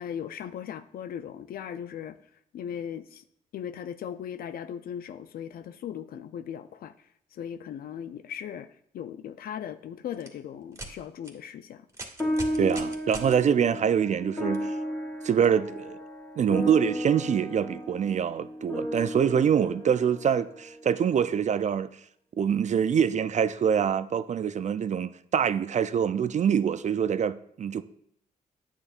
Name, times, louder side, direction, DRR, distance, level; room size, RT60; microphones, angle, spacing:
voice 1, 0.0-2.2 2.5-3.2 3.5-11.9, left 9 dB, 65° left, 0.5 m, -38 dB
sound 1, 10.1-10.3 10.7-10.9 11.2-11.3 11.9-13.3 14.5-14.6 15.4-15.5, right 1 dB, 15° right, 2.0 m, -40 dB
sound 2, 12.2-20.9, equal, 10° left, 2.0 m, -33 dB
voice 2, 12.6-14.8 15.2-16.0 16.4-21.9 22.4-27.8, right 8 dB, 45° right, 0.4 m, -25 dB
9.2 x 6.9 x 2.5 m
hypercardioid pair, 50°, 17 cm